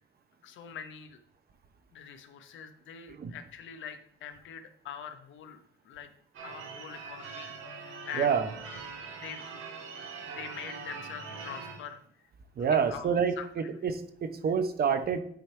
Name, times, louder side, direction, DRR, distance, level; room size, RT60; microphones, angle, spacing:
voice 1, 0.4-1.2 1.9-5.6 5.8-6.1 6.4-8.3 9.1-9.6 10.3-12.0 12.7-13.5, left 8 dB, 75° left, 8 dB, 0.8 m, -44 dB
Church bell / Car / Alarm, 6.3-11.9, right 5 dB, 80° right, 1.5 m, -43 dB
voice 2, 8.2-8.5 12.6-13.4 13.8-15.2, right 6 dB, 50° right, 8 dB, 0.8 m, -27 dB
9.3 x 3.3 x 4.4 m, 0.65 s
cardioid pair, 90°, 20 cm